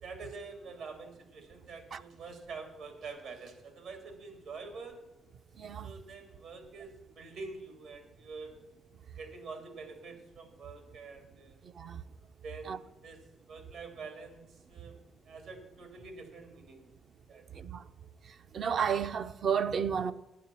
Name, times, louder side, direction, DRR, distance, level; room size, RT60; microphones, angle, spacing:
voice 1, 0.0-4.9 5.8-8.6 9.2-11.6 12.4-13.2 13.5-14.4 14.7-15.0 15.3-16.9 17.3-17.6, right 4 dB, 75° right, 2.6 m, -46 dB
voice 2, 5.6-5.9 11.8-12.0 12.7-12.8 17.6-17.8 18.5-20.1, right 7 dB, 55° right, 0.6 m, -31 dB
9.6 x 9.4 x 7.3 m
cardioid pair, 90°, 0 cm